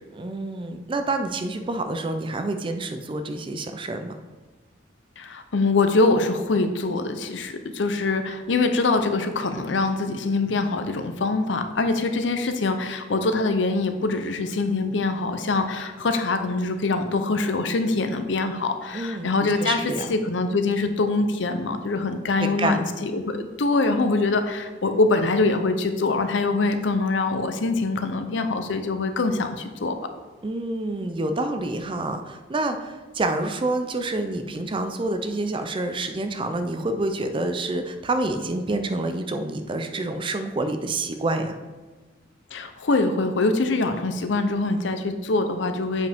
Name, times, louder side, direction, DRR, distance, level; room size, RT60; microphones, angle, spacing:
voice 1, 0.1-4.2 18.9-20.1 22.4-22.9 30.4-41.6, right 2 dB, 25° right, 7 dB, 0.4 m, -28 dB
voice 2, 5.2-29.9 42.5-46.1, left 3 dB, 75° left, 8 dB, 0.6 m, -24 dB
7.7 x 5.1 x 3.5 m, 1.3 s
head